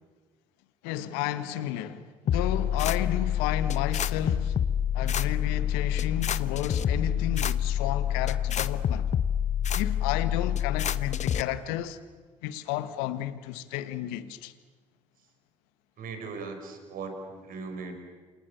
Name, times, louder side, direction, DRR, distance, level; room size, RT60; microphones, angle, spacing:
voice 1, 0.8-4.6 4.9-9.1 9.7-12.0 12.4-14.5, left 12 dB, 75° left, 1.6 m, -32 dB
sound 1, 2.3-11.4, left 9 dB, 45° left, 1.1 m, -27 dB
voice 2, 16.0-18.0, right 4 dB, 55° right, 6.1 m, -39 dB
29.0 x 27.5 x 7.1 m
hypercardioid pair, 55°, 17 cm